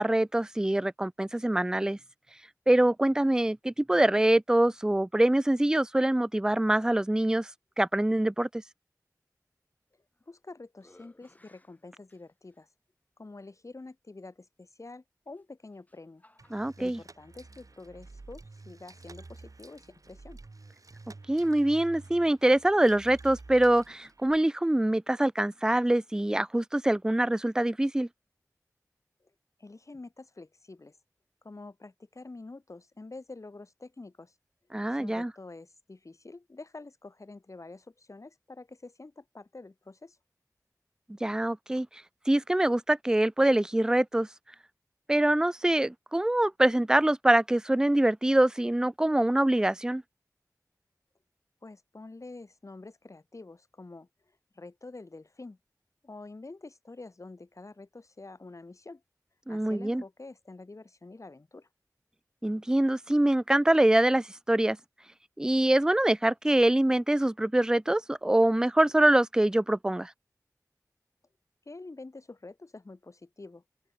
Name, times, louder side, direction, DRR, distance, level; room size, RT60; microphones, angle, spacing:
voice 1, 0.0-2.0 2.7-7.5 7.8-8.5 16.5-17.0 21.3-28.1 34.7-35.3 41.2-41.9 42.3-44.3 45.1-50.0 59.5-60.0 62.4-64.8 65.4-70.1, right 1 dB, 10° right, 0.3 m, -24 dB
sound 1, 9.9-10.4 10.8-12.6 13.4-13.5 15.3-17.0, left 1 dB, 25° left, 3.3 m, -62 dB
voice 2, 10.3-12.7 13.2-16.2 16.8-20.4 29.2-29.3 29.6-31.0 31.4-34.3 34.9-40.2 51.6-54.1 54.5-55.6 56.0-59.0 59.5-61.7 71.6-73.6, left 3 dB, 55° left, 1.5 m, -47 dB
sound 2, 16.4-24.4, right 3 dB, 65° right, 2.0 m, -50 dB
open air
wide cardioid pair, 55°, 6 cm